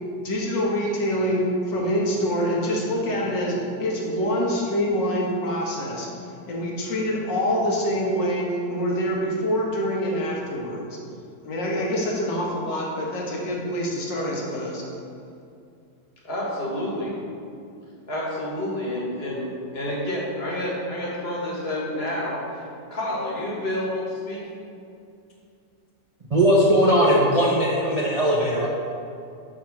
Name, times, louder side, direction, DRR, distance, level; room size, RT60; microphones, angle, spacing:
voice 1, 0.2-1.4 1.7-3.5 3.8-6.1 6.5-11.0 11.5-14.8, equal, 70° left, -3 dB, 2.0 m, -25 dB
voice 2, 16.2-17.2 18.1-22.6 22.9-24.5 28.0-28.2, left 1 dB, 35° left, -4 dB, 1.6 m, -29 dB
voice 3, 26.3-28.7, equal, 60° right, -5 dB, 0.3 m, -19 dB
5.9 x 5.1 x 5.9 m, 2.5 s
omnidirectional pair, 2.0 m